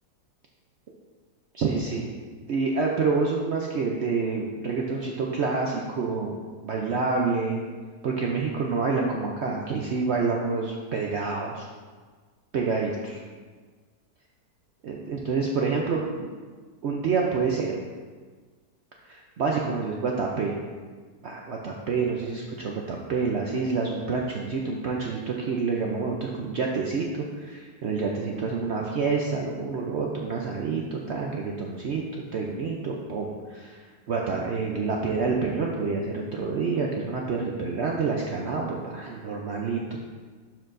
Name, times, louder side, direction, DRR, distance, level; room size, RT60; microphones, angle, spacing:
voice 1, 1.5-2.1 2.5-7.6 8.0-11.7 12.5-13.2 14.8-16.3 16.8-17.8 19.0-20.6 21.2-33.8 34.1-40.0, right 4 dB, 70° right, -1 dB, 0.6 m, -28 dB
11.5 x 4.5 x 2.5 m, 1.5 s
omnidirectional pair, 1.8 m